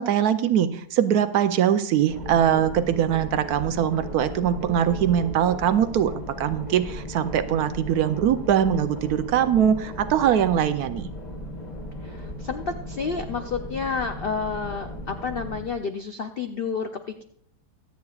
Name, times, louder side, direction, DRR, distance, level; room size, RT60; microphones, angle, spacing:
voice 1, 0.0-11.1, right 9 dB, 70° right, 11 dB, 1.1 m, -22 dB
sound 1, 2.1-15.7, equal, 30° left, 1.1 m, -36 dB
voice 2, 12.0-17.2, left 5 dB, 65° left, 6 dB, 0.5 m, -30 dB
24.0 x 8.3 x 2.4 m, 0.64 s
omnidirectional pair, 1.7 m